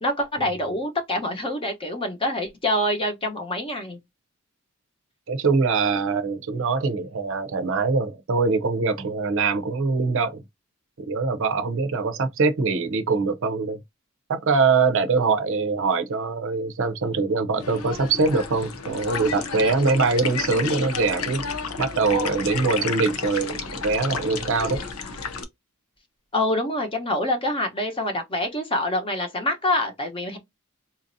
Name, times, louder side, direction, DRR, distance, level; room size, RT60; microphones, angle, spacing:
voice 1, 0.0-4.0 26.3-30.4, left 1 dB, 25° left, 0.9 m, -26 dB
voice 2, 5.3-10.4 11.1-13.8 14.3-21.4 21.8-24.8, right 4 dB, 65° right, 0.6 m, -23 dB
sound 1, 17.6-25.4, left 5 dB, 85° left, 0.7 m, -31 dB
4.1 x 2.6 x 2.6 m
head